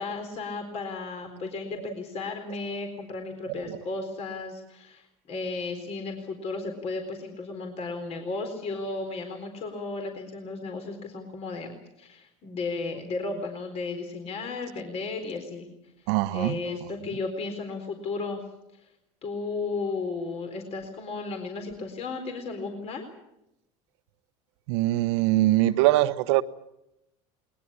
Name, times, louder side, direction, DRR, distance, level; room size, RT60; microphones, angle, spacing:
voice 1, 0.0-15.7 16.0-18.4 18.7-18.9 19.2-23.1, left 3 dB, 45° left, 4.1 m, -34 dB
voice 2, 16.1-16.8 24.7-26.4, right 16 dB, 75° right, 1.1 m, -23 dB
21.5 x 20.5 x 8.6 m
supercardioid pair, 100°, 14 cm